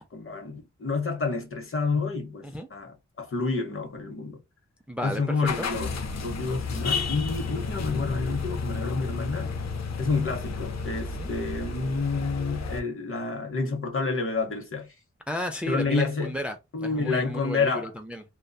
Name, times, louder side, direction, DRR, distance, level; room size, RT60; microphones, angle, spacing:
voice 1, 0.1-4.4 5.0-9.5 10.0-14.9 15.7-16.3 16.7-17.9, left 4 dB, 45° left, 0.9 m, -29 dB
voice 2, 4.9-5.7 11.2-11.3 15.3-18.2, equal, 5° right, 0.4 m, -33 dB
sound 1, 5.4-12.8, left 4 dB, 65° left, 0.5 m, -32 dB
2.6 x 2.2 x 2.3 m
wide cardioid pair, 65°, 29 cm